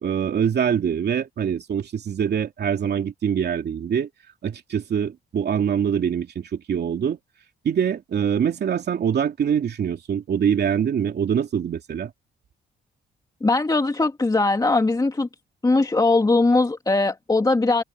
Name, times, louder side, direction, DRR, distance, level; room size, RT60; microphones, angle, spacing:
voice 1, 0.0-4.1 4.4-7.2 7.6-12.1, right 8 dB, 55° right, 2.8 m, -24 dB
voice 2, 13.4-15.3 15.6-17.8, left 3 dB, 20° left, 2.3 m, -20 dB
cardioid pair, 90°, 20 cm